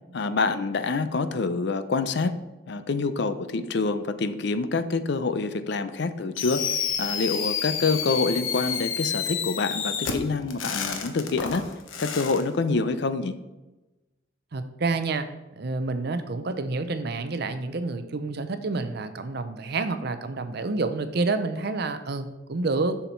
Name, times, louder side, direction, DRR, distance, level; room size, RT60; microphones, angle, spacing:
voice 1, 0.1-2.4 2.7-6.7 7.0-11.7 12.0-13.4, left 3 dB, 60° left, 11 dB, 0.5 m, -26 dB
Fireworks, 6.4-12.4, left 7 dB, 85° left, 0.9 m, -30 dB
voice 2, 14.5-15.3 15.6-23.0, right 3 dB, 55° right, 10 dB, 0.6 m, -28 dB
7.0 x 5.8 x 4.4 m, 1.1 s
head